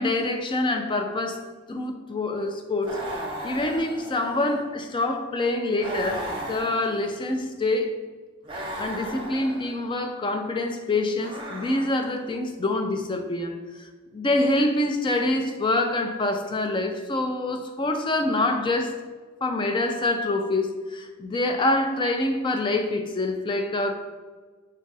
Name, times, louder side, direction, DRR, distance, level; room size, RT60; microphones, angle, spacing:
voice 1, 0.0-1.4 1.7-3.1 3.4-8.0 8.8-13.6 14.1-19.0 19.4-23.9, left 2 dB, 25° left, 6 dB, 0.4 m, -26 dB
sound 1, 2.8-4.6 5.8-7.3 8.4-9.8 11.2-12.3, right 1 dB, 25° right, 0.8 m, -36 dB
5.3 x 2.4 x 4.0 m, 1.4 s
head